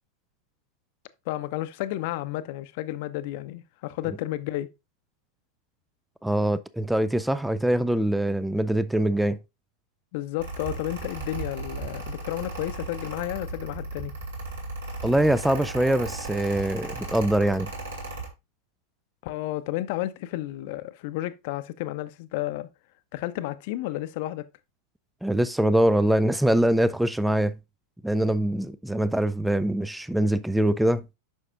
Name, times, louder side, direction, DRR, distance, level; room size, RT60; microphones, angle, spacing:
voice 1, 1.3-4.7 10.1-14.1 19.2-22.7 23.1-24.5, left 15 dB, 50° left, 0.7 m, -32 dB
voice 2, 6.2-9.4 15.0-17.7 25.2-27.5 28.0-31.1, right 1 dB, 5° right, 0.3 m, -23 dB
Mechanical fan, 10.4-18.3, right 2 dB, 60° right, 2.6 m, -36 dB
9.0 x 6.3 x 2.5 m
figure-of-eight pair, 90°, 0 cm